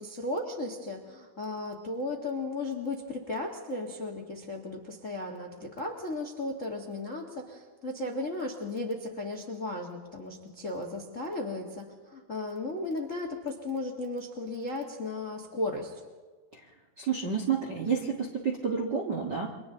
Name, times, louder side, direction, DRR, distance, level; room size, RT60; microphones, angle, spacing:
voice 1, 0.0-16.0, left 2 dB, 70° left, 2 dB, 0.7 m, -35 dB
voice 2, 17.0-19.5, right 6 dB, 70° right, -1 dB, 1.0 m, -30 dB
29.5 x 24.0 x 3.9 m, 1.4 s
omnidirectional pair, 4.7 m